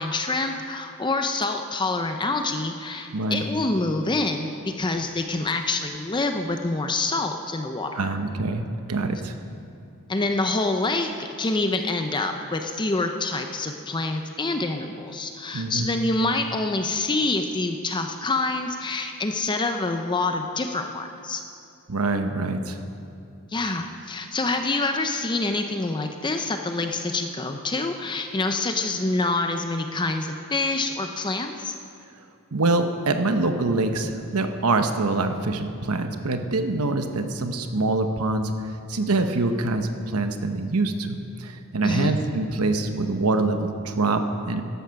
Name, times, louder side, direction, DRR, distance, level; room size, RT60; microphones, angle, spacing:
voice 1, 0.0-8.2 10.1-21.4 23.5-31.8 41.8-42.1, left 2 dB, 20° left, 5 dB, 0.6 m, -26 dB
voice 2, 3.1-3.4 8.0-9.3 15.5-15.9 21.9-22.8 32.5-44.6, right 2 dB, 75° right, 7 dB, 1.0 m, -25 dB
14.0 x 11.5 x 5.8 m, 2.5 s
head